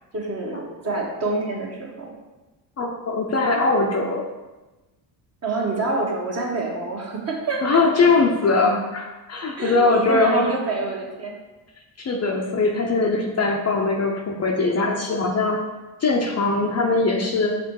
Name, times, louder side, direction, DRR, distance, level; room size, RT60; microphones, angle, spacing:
voice 1, 0.1-2.1 5.4-8.1 9.6-11.3, right 3 dB, 30° right, -1 dB, 1.5 m, -27 dB
voice 2, 2.8-4.2 7.6-10.5 12.0-15.6 16.0-17.5, left 3 dB, 30° left, 0 dB, 0.8 m, -21 dB
5.8 x 3.4 x 4.8 m, 1.1 s
supercardioid pair, 80°, 49 cm